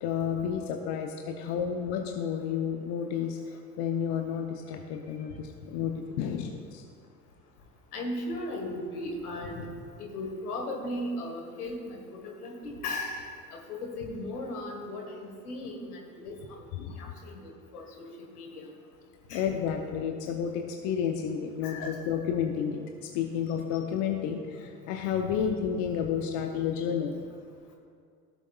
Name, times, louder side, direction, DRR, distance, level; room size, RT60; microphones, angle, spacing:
voice 1, 0.0-6.8 16.8-17.0 19.3-27.1, left 8 dB, 60° left, 3 dB, 0.8 m, -31 dB
voice 2, 7.9-9.7 10.0-16.3 17.0-18.6 19.3-19.5 21.6-22.0, left 1 dB, 85° left, 1 dB, 1.5 m, -37 dB
16.0 x 7.2 x 2.4 m, 2.3 s
hypercardioid pair, 65°, 44 cm